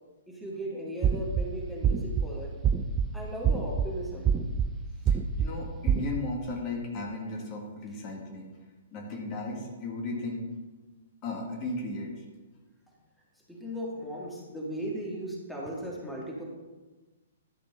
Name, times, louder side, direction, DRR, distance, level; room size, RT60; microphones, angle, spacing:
voice 1, 0.3-2.5 3.1-4.3 13.5-16.4, right 1 dB, ahead, -4 dB, 1.9 m, -37 dB
sound 1, 1.0-1.4 1.8-2.3 2.6-3.1 3.4-3.9 4.2-4.7 5.1-5.5 5.9-6.1, right 8 dB, 25° right, 0.5 m, -24 dB
voice 2, 5.1-8.5 8.9-10.5 11.2-12.2, left 2 dB, 35° left, 0 dB, 1.8 m, -35 dB
12.0 x 4.4 x 5.6 m, 1.2 s
figure-of-eight pair, 120°, 0 cm